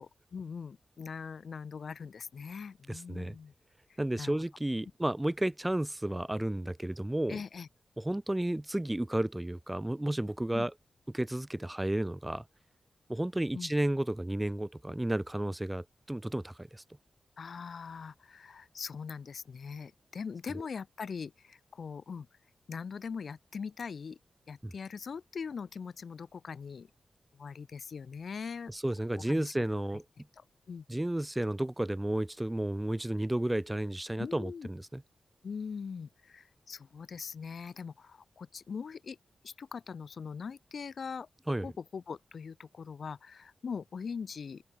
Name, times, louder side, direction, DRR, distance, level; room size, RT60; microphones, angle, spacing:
voice 1, 0.0-3.5 4.2-4.4 7.3-7.7 10.5-10.7 13.5-13.7 17.4-22.3 22.7-24.2 24.5-26.9 27.3-28.7 29.1-29.5 30.4-30.8 34.2-34.7 35.4-39.2 39.4-41.3 41.6-44.6, left 6 dB, 65° left, 3.1 m, -41 dB
voice 2, 2.9-3.4 4.0-7.4 8.0-10.7 11.1-12.4 13.1-16.8 24.6-24.7 28.7-30.0 30.9-35.0 41.5-41.7, right 1 dB, 10° right, 4.1 m, -32 dB
open air
wide cardioid pair, 110°, 0 cm